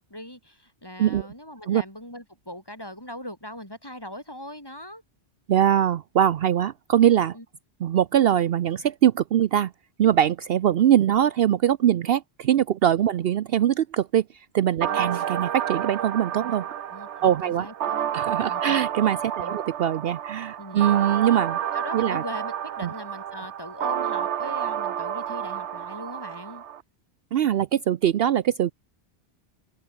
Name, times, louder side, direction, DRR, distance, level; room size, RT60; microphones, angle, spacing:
voice 1, 0.0-5.0 7.3-7.5 14.9-15.1 16.9-18.1 18.5-18.8 19.4-19.6 20.6-20.8 21.7-26.6, left 1 dB, 20° left, 5.4 m, -40 dB
voice 2, 5.5-7.4 7.8-9.7 10.0-14.2 14.5-16.6 17.2-17.7 18.1-21.6 21.9-22.2 27.3-28.7, right 10 dB, 65° right, 0.8 m, -22 dB
sound 1, 14.8-26.8, right 10 dB, 85° right, 1.1 m, -30 dB
open air
omnidirectional pair, 1.1 m